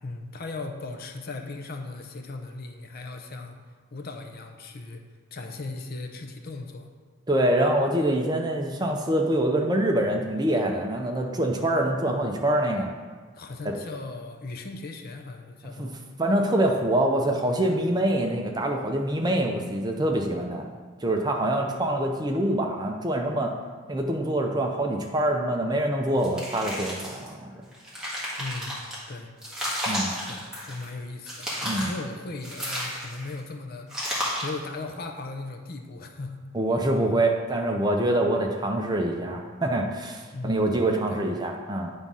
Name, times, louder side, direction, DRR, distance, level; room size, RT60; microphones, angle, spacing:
voice 1, 0.0-3.6 3.9-5.0 5.3-6.9 13.3-16.0 28.4-29.3 30.2-33.9 34.4-36.4 40.3-40.7 41.1-41.2, left 3 dB, 45° left, 4 dB, 0.6 m, -37 dB
voice 2, 7.3-12.9 13.6-13.7 15.6-15.9 16.2-20.7 21.0-23.5 23.9-27.5 29.9-30.1 31.6-31.9 36.5-41.9, right 1 dB, 20° right, 2 dB, 0.6 m, -25 dB
sound 1, 26.2-27.3 27.7-29.0 29.4-30.9 31.2-32.0 32.4-33.3 33.9-34.6, equal, 5° right, 1.6 m, -32 dB
8.8 x 3.6 x 5.4 m, 1.5 s
head